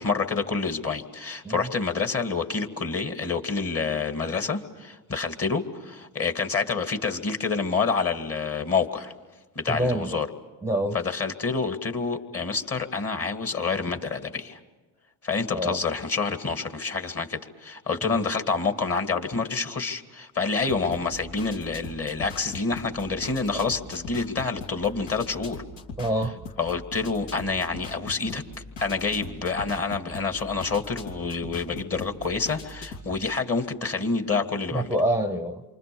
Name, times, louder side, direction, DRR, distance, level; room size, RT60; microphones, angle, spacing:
voice 1, 0.0-9.1 9.6-10.3 10.9-14.6 15.2-25.6 26.6-28.4 28.8-34.9, left 4 dB, 30° left, 7 dB, 2.2 m, -28 dB
voice 2, 9.7-10.2 10.6-11.0 15.5-15.8 18.0-18.2 26.0-26.4 34.7-35.6, right 1 dB, 5° right, 10 dB, 0.9 m, -26 dB
sound 1, 20.6-33.1, left 3 dB, 70° left, 3.1 m, -41 dB
28.5 x 24.5 x 7.0 m, 1.2 s
supercardioid pair, 85°, 44 cm